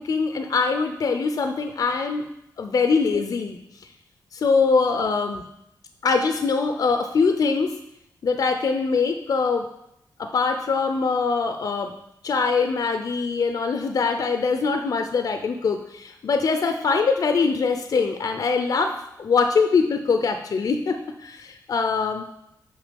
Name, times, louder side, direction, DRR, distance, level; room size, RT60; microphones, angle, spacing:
voice 1, 0.0-2.3 2.6-3.9 4.3-5.4 6.0-7.7 8.2-9.7 10.2-11.9 12.2-22.2, left 4 dB, 60° left, 6 dB, 0.5 m, -23 dB
6.4 x 4.7 x 5.2 m, 0.81 s
cardioid pair, 85°, 7 cm